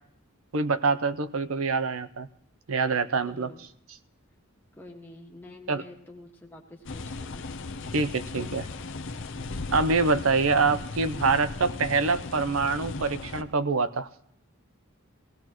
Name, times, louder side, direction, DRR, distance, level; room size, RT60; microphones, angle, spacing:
voice 1, 0.5-2.3 2.7-3.5 5.7-5.8 7.9-8.7 9.7-14.1, right 4 dB, 75° right, 13 dB, 0.7 m, -25 dB
voice 2, 3.2-3.6 4.8-7.5, left 1 dB, 10° left, -1 dB, 1.7 m, -47 dB
sound 1, 6.8-13.4, left 3 dB, 60° left, 0.7 m, -36 dB
18.0 x 17.5 x 3.0 m, 0.72 s
head